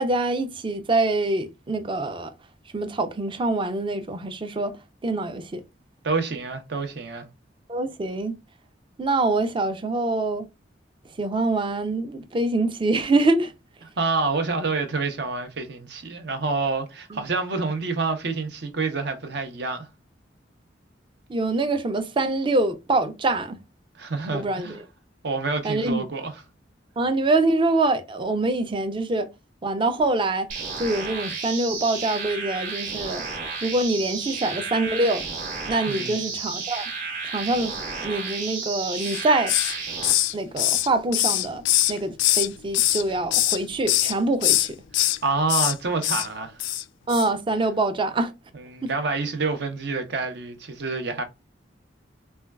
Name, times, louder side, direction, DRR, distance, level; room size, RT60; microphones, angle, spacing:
voice 1, 0.0-2.3 2.7-4.7 5.0-5.6 7.7-8.3 9.0-10.5 11.2-13.5 17.1-17.2 21.3-23.6 24.3-24.7 25.6-26.1 27.0-29.3 29.6-30.5 30.8-33.2 33.6-35.2 35.7-36.9 37.2-37.7 38.0-39.5 40.3-41.6 41.9-44.8 47.1-48.3 48.8-48.9, right 2 dB, 25° right, 0.4 m, -25 dB
voice 2, 6.0-7.3 13.8-19.9 23.9-24.8 25.2-26.4 35.9-36.2 40.2-40.3 45.2-46.6 48.5-51.2, right 3 dB, 65° right, 0.7 m, -28 dB
sound 1, 30.5-40.1, right 4 dB, 45° right, 1.1 m, -32 dB
Hiss, 39.0-39.8 40.0-42.5 42.7-43.6 43.9-44.1 44.4-45.2 45.5-45.7 46.0-46.3 46.6-46.8 47.1-47.3, left 14 dB, 75° left, 0.3 m, -22 dB
4.3 x 2.2 x 2.2 m
head